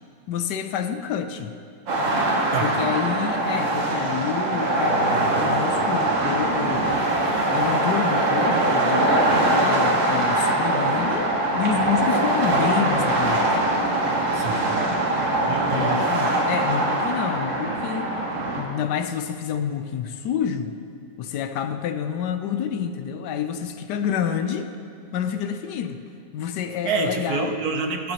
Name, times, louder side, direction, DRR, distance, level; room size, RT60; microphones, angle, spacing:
voice 1, 0.3-1.5 2.6-6.9 7.5-13.7 15.7-18.1 18.6-20.8 21.2-24.7 25.1-26.0 26.3-27.6, left 8 dB, 70° left, 9 dB, 1.2 m, -28 dB
sound 1, 1.9-18.6, right 2 dB, 85° right, 2.3 m, -22 dB
voice 2, 14.3-14.8 15.5-16.0 26.8-28.1, right 4 dB, 60° right, 4 dB, 1.1 m, -27 dB
21.5 x 7.7 x 2.9 m, 2.6 s
omnidirectional pair, 2.0 m